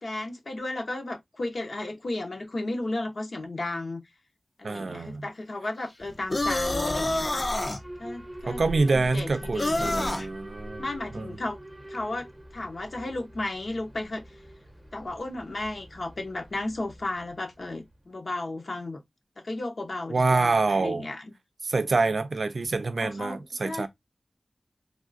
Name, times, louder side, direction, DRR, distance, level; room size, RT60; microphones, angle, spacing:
voice 1, 0.0-4.0 4.6-7.5 8.0-8.6 8.9-10.2 10.8-11.6 11.9-12.3 12.5-14.2 14.9-19.0 19.4-21.3 23.0-23.4 23.6-23.9, left 2 dB, 70° left, 0.8 m, -34 dB
voice 2, 4.6-5.3 8.5-10.8 11.1-11.4 20.1-21.1 21.6-23.9, right 3 dB, 75° right, 0.4 m, -26 dB
Alarm, 6.0-18.0, right 1 dB, 15° right, 0.7 m, -43 dB
sound 1, 6.3-7.8 9.6-10.3, left 2 dB, 40° left, 0.5 m, -27 dB
3.5 x 2.4 x 2.5 m
wide cardioid pair, 70°, 0 cm